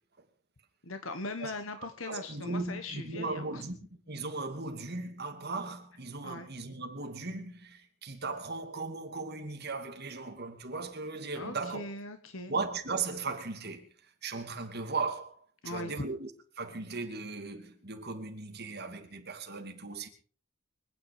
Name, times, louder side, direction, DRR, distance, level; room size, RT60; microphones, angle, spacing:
voice 1, 0.8-3.6 6.2-6.5 11.3-12.5 15.6-16.1, left 2 dB, 65° left, 1.4 m, -40 dB
voice 2, 2.1-3.8 4.1-11.9 12.5-13.9 14.2-15.4 15.6-16.3 16.6-20.1, right 3 dB, 50° right, 2.7 m, -37 dB
25.0 x 9.5 x 4.9 m
head